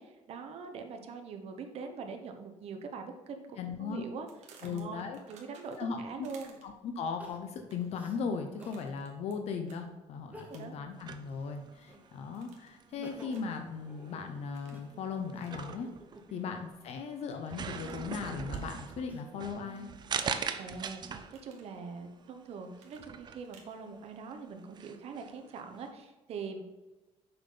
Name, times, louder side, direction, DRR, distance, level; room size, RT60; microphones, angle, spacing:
voice 1, 0.0-4.3 4.6-6.6 10.5-10.7 16.3-16.4 20.6-21.0 21.3-26.6, right 5 dB, 60° right, 5 dB, 1.0 m, -43 dB
voice 2, 3.6-4.1 4.6-5.2 5.8-6.3 6.6-15.9 16.3-19.9, left 5 dB, 65° left, 5 dB, 0.7 m, -38 dB
sound 1, 4.3-5.9 6.2-6.9 7.5-8.0 8.6-9.4 9.6-9.8 10.5-10.9 11.3-11.9 12.3-12.8 13.3-13.6 14.5-14.8 15.4-15.6 16.9-17.3 17.9-18.6 20.2-20.8 21.1-21.7 22.8-23.8, right 5 dB, 80° right, 1.4 m, -58 dB
Crying sobbing, 7.2-8.9 9.4-9.5 10.2-10.9 11.2-12.3 12.7-16.7 17.4-19.5 20.1-20.9, right 1 dB, 15° right, 1.3 m, -53 dB
sound 2, 10.9-25.9, right 6 dB, 40° right, 0.5 m, -42 dB
6.9 x 5.7 x 3.9 m, 1.1 s
cardioid pair, 125°, 12 cm